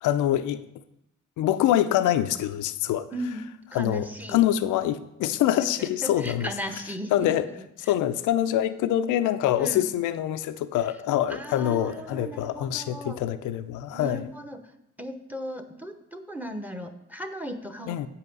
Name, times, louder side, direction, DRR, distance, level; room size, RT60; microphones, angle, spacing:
voice 1, 0.0-0.6 1.4-3.1 3.7-6.5 7.1-7.5 7.9-14.3 17.9-18.1, left 12 dB, 85° left, 12 dB, 0.5 m, -25 dB
voice 2, 3.1-4.4 5.6-7.9 9.6-9.9 11.3-13.2 13.9-14.6 15.0-18.1, equal, 5° right, 8 dB, 0.8 m, -36 dB
8.5 x 5.6 x 5.3 m, 0.84 s
cardioid pair, 90°, 30 cm